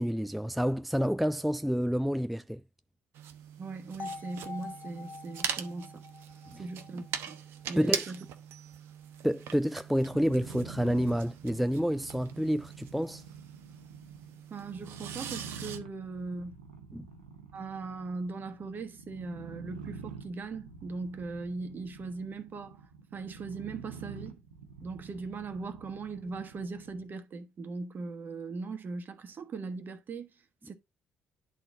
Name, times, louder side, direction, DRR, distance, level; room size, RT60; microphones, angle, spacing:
voice 1, 0.0-2.6 6.5-6.6 7.8-8.1 9.2-13.2 16.9-17.1, equal, ahead, 0.3 m, -29 dB
sound 1, 3.1-15.8, right 9 dB, 65° right, 0.9 m, -41 dB
voice 2, 3.6-6.0 6.5-7.4 7.7-8.2 14.5-16.6 17.5-22.8 23.1-24.4 24.8-30.3 30.6-30.7, right 3 dB, 45° right, 1.4 m, -39 dB
sound 2, 4.0-8.0, left 4 dB, 45° left, 0.7 m, -46 dB
sound 3, 9.9-27.1, right 5 dB, 85° right, 1.1 m, -48 dB
10.5 x 4.0 x 3.8 m
hypercardioid pair, 45°, 4 cm